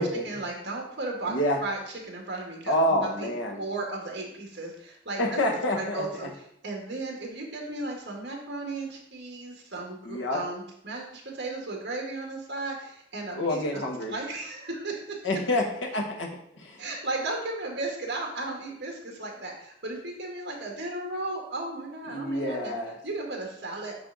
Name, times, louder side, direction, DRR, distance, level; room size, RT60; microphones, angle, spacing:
voice 1, 0.2-1.4 1.6-1.8 2.1-3.3 3.6-5.4 5.7-6.3 6.6-13.8 14.1-15.2 16.8-22.7 23.0-24.1, right 2 dB, 60° right, 0 dB, 1.8 m, -35 dB
voice 2, 1.3-1.6 2.7-3.6 5.2-6.3 10.0-10.4 13.3-14.1 15.2-16.3 16.6-16.8 22.1-23.0, left 1 dB, 85° left, 0 dB, 1.2 m, -28 dB
9.6 x 3.4 x 4.0 m, 0.70 s
head